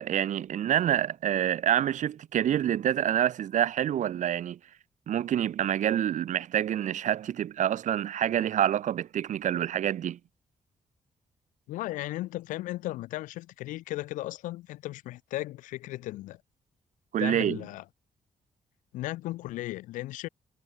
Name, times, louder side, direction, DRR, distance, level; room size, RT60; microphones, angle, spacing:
voice 1, 0.0-4.6 5.1-10.2 17.1-17.6, right 10 dB, 70° right, 1.4 m, -27 dB
voice 2, 11.7-16.4 17.2-17.8 18.9-20.3, left 17 dB, 85° left, 2.6 m, -36 dB
supercardioid pair, 50°, 13 cm